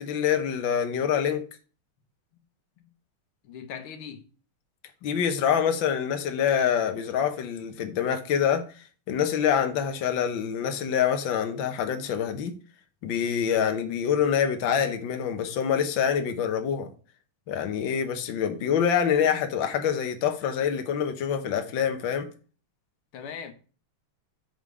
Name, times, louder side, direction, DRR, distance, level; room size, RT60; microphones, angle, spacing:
voice 1, 0.0-1.4 5.0-8.6 9.1-12.6 13.0-16.9 17.5-22.3, left 8 dB, 65° left, 1.7 m, -26 dB
voice 2, 3.4-4.3 7.9-8.0 23.1-23.5, left 7 dB, 90° left, 2.0 m, -40 dB
9.6 x 3.8 x 4.8 m
omnidirectional pair, 2.3 m